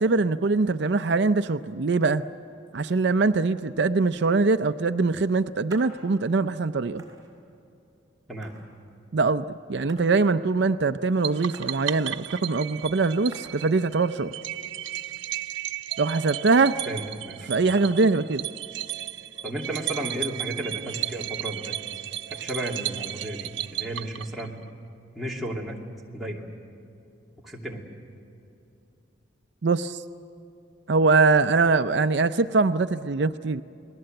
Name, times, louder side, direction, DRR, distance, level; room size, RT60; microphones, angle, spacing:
voice 1, 0.0-2.2 2.7-7.0 9.1-14.3 16.0-16.8 17.5-18.5 29.6-30.0 30.9-33.6, right 3 dB, 65° right, 10 dB, 0.5 m, -22 dB
sound 1, 5.7-6.0 6.6-6.7 6.9-7.7 8.4-9.3 9.8-10.6 10.8-10.9 11.1-12.3 13.1-13.9 14.2-14.3 14.6-15.4 15.7-15.8 16.1-16.9 17.2-17.3 17.5-18.4 19.9-20.6, right 2 dB, 20° right, 4.6 m, -51 dB
sound 2, 11.2-24.7, right 13 dB, 85° right, 0.8 m, -34 dB
voice 2, 16.9-17.5 19.4-21.8 22.3-24.5 25.2-25.8 26.1-26.5 27.4-27.8, right 1 dB, ahead, -4 dB, 2.7 m, -33 dB
30.0 x 20.5 x 7.8 m, 2.8 s
head